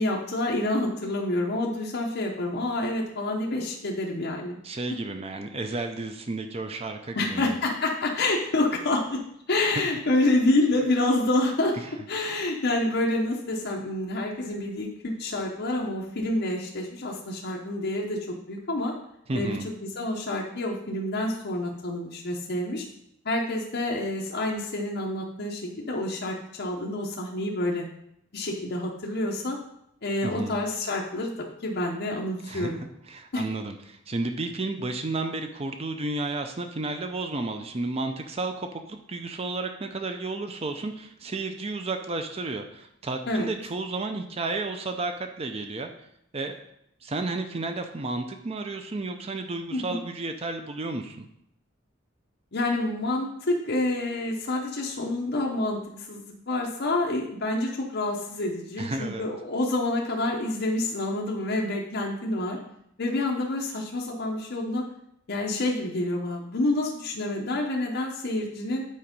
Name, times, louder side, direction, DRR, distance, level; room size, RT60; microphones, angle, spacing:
voice 1, 0.0-4.6 7.1-9.2 9.5-11.8 12.1-18.9 19.3-22.9 23.2-27.8 28.3-29.6 30.0-32.8 33.3-33.4 43.3-43.5 49.7-50.0 52.5-62.6 63.0-64.8 65.3-68.8, left 2 dB, 55° left, -1 dB, 0.9 m, -28 dB
voice 2, 4.6-7.5 11.8-11.9 19.3-19.7 30.2-30.6 32.4-32.7 33.1-45.9 46.3-46.6 47.0-51.3 58.8-59.3, right 2 dB, 30° right, 6 dB, 0.5 m, -32 dB
8.6 x 4.4 x 5.2 m, 0.75 s
head